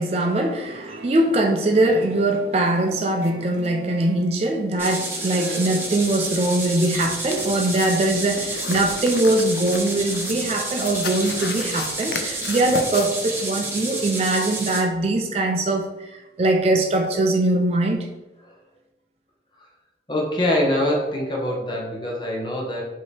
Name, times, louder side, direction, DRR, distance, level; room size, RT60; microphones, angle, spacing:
voice 1, 0.0-18.1, right 2 dB, 35° right, 3 dB, 0.4 m, -22 dB
sound 1, 0.6-4.7 5.2-5.7, right 1 dB, 85° right, 0.6 m, -39 dB
sound 2, 3.0-3.1 3.2-3.3 3.6-3.8 5.9-13.1, left 5 dB, 65° left, 0.4 m, -36 dB
sound 3, 4.8-14.8, right 2 dB, 15° right, 0.9 m, -30 dB
voice 2, 20.1-22.8, left 1 dB, 25° left, -1 dB, 0.9 m, -24 dB
5.3 x 2.8 x 3.2 m, 1.1 s
head